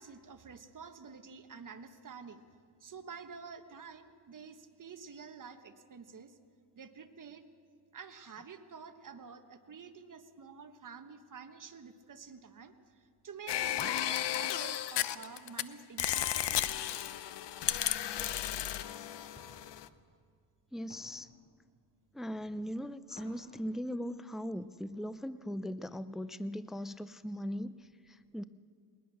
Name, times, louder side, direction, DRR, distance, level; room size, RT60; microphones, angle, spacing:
voice 1, 0.0-6.4 6.7-7.4 7.9-16.7 17.9-18.2, right 5 dB, 45° right, 8 dB, 1.3 m, -49 dB
Wood, 12.0-23.5, equal, 20° left, 5.5 m, -62 dB
sound 1, 13.5-15.6 16.0-19.9, left 12 dB, 70° left, 0.8 m, -34 dB
voice 2, 20.7-21.3 22.1-27.8 28.1-28.4, equal, ahead, 13 dB, 0.4 m, -39 dB
21.0 x 20.0 x 6.2 m, 2.2 s
cardioid pair, 110°, 43 cm